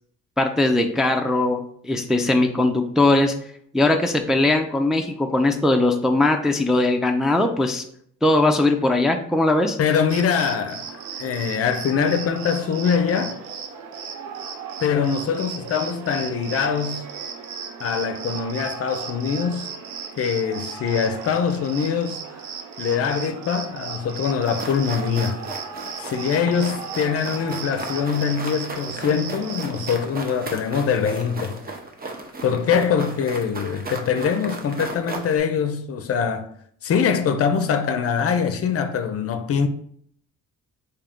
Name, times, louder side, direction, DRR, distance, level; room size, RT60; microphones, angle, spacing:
voice 1, 0.4-3.3 3.7-7.8 8.2-9.8, left 2 dB, ahead, 0.3 m, -20 dB
voice 2, 9.8-10.9 11.2-13.4 14.8-17.0 17.8-19.7 20.2-22.2 22.8-25.4 26.0-31.6 32.4-36.5 36.8-39.7, left 6 dB, 50° left, 0.5 m, -23 dB
Cricket, 10.1-30.0, right 6 dB, 85° right, 0.6 m, -35 dB
sound 1, 24.4-35.4, right 3 dB, 30° right, 0.7 m, -35 dB
3.7 x 2.8 x 3.5 m
cardioid pair, 90°, 30 cm